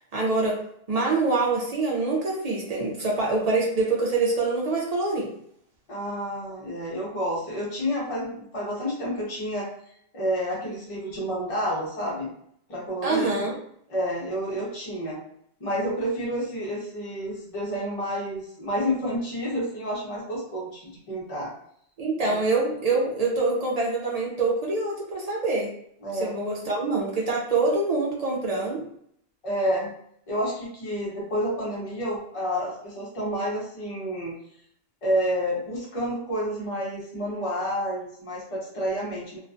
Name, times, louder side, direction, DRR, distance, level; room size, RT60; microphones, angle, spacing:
voice 1, 0.1-0.6 0.9-5.3 13.0-13.5 22.0-25.7 26.1-28.8, right 3 dB, 50° right, -3 dB, 0.5 m, -25 dB
voice 2, 5.9-9.7 10.1-12.3 12.7-13.3 13.9-15.2 15.6-21.5 22.2-22.4 26.0-26.3 29.4-29.9 30.3-34.3 35.0-39.4, equal, 35° left, -5 dB, 0.8 m, -29 dB
2.3 x 2.1 x 2.5 m, 0.69 s
omnidirectional pair, 1.1 m